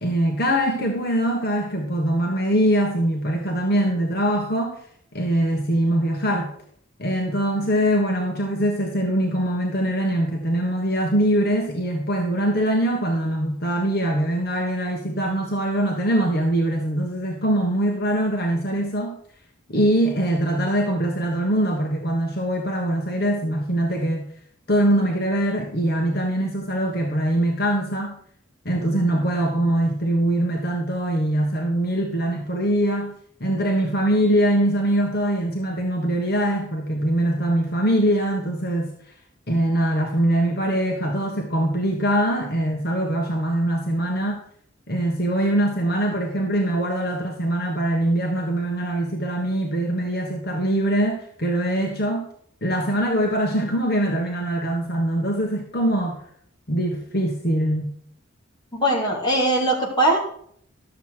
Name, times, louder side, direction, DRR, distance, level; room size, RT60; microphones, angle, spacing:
voice 1, 0.0-4.8 5.1-6.5 7.0-19.2 19.7-24.3 24.7-28.2 28.6-33.1 33.4-38.9 39.5-44.4 44.9-52.3 52.6-56.2 56.7-57.9, right 1 dB, 50° left, 0 dB, 1.5 m, -23 dB
voice 2, 58.7-60.2, right 1 dB, 20° left, -2 dB, 2.6 m, -20 dB
12.0 x 7.4 x 4.7 m, 0.62 s
head